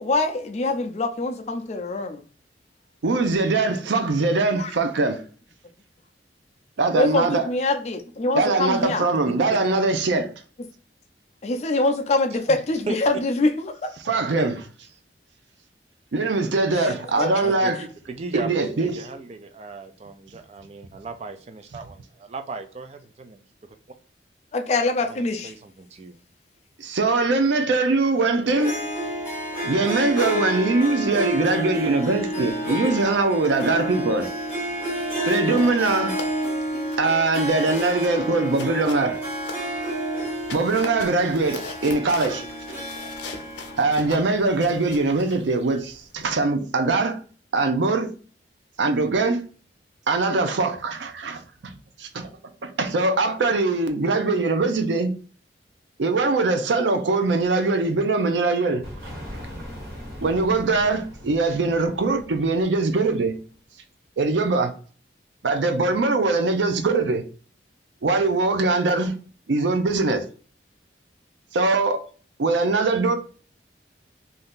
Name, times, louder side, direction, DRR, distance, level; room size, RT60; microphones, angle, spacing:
voice 1, 0.0-2.2 4.6-4.7 7.0-9.1 11.4-13.9 17.2-17.3 24.5-25.5, left 2 dB, 40° left, 0.4 m, -24 dB
voice 2, 3.0-5.2 6.8-7.5 8.3-10.3 14.0-14.5 16.1-17.8 18.3-19.1 26.8-28.9 29.6-34.3 35.2-36.2 37.0-39.2 40.5-42.4 43.8-47.2 47.5-48.1 48.8-49.4 50.1-51.7 52.0-52.3 52.6-55.1 56.0-58.8 60.2-63.4 64.2-64.7 65.4-67.2 68.0-69.1 69.5-70.2 71.5-72.0 72.4-73.2, right 3 dB, 90° right, 0.5 m, -22 dB
voice 3, 9.3-9.6 12.5-12.6 12.9-13.0 14.4-14.5 17.4-23.4 25.0-26.2, right 3 dB, 35° right, 0.4 m, -36 dB
Harp, 28.5-45.0, equal, 10° right, 1.3 m, -30 dB
sound 1, 33.2-33.9 34.2-34.4 34.8-40.0 40.4-46.3, left 4 dB, 85° left, 0.6 m, -41 dB
sound 2, 58.8-63.5, equal, 65° right, 1.4 m, -40 dB
2.7 x 2.4 x 3.5 m
head